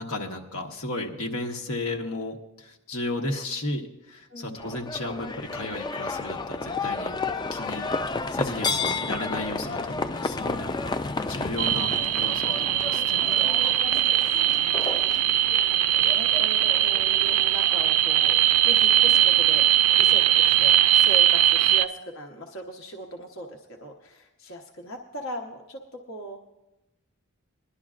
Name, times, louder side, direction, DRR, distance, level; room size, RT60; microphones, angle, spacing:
voice 1, 0.0-7.1 7.5-7.8 8.3-11.0 11.3-11.9 12.2-13.4, left 2 dB, 80° left, 2 dB, 1.2 m, -34 dB
voice 2, 4.3-4.7 13.9-18.4 18.6-19.7 20.0-26.4, right 1 dB, 65° left, 1 dB, 1.0 m, -39 dB
Livestock farm animals working animals, 4.6-21.0, left 3 dB, 20° left, 0.3 m, -33 dB
sound 1, 11.6-21.8, right 11 dB, 80° right, 0.4 m, -21 dB
21.5 x 11.5 x 2.5 m, 0.93 s
head